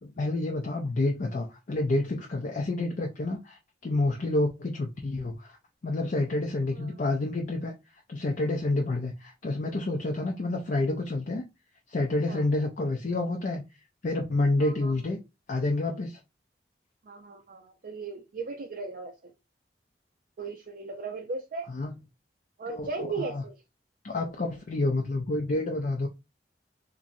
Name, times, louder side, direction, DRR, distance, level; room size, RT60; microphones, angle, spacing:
voice 1, 0.0-5.6 5.8-7.8 8.1-11.4 11.9-13.6 14.0-15.2 15.5-16.2 21.7-22.0 22.7-23.4 24.0-26.1, left 2 dB, 50° left, 0.4 m, -29 dB
voice 2, 6.8-7.1 10.0-10.2 12.3-12.4 14.6-15.0 17.1-19.3 20.4-21.7 22.6-23.6, right 4 dB, 50° right, 0.4 m, -37 dB
3.0 x 2.5 x 2.6 m
head